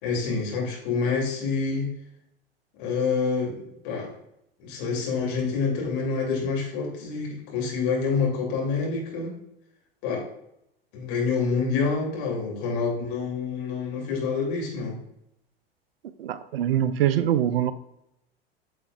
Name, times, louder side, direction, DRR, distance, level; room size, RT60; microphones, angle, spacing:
voice 1, 0.0-1.9 2.8-4.1 4.6-9.4 10.0-10.2 10.9-15.0, left 5 dB, 55° left, -2 dB, 2.9 m, -27 dB
voice 2, 16.2-17.7, right 10 dB, 70° right, 14 dB, 0.6 m, -23 dB
9.5 x 6.2 x 2.4 m, 0.81 s
figure-of-eight pair, 80°, 31 cm